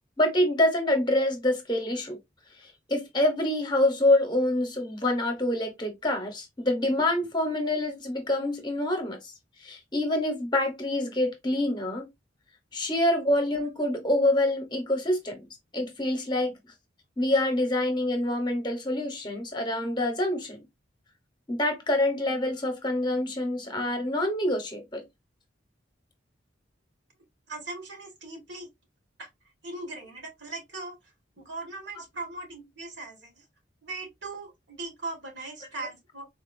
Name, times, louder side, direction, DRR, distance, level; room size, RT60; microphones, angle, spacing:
voice 1, 0.2-2.2 2.9-9.2 9.6-12.1 12.7-15.5 15.7-16.5 17.2-20.6 21.5-25.0, left 1 dB, 25° left, 0.8 m, -26 dB
voice 2, 27.5-28.7 29.2-29.3 29.6-31.0 31.4-33.4 33.8-36.2, right 2 dB, 65° right, 1.4 m, -39 dB
3.9 x 2.4 x 2.4 m
head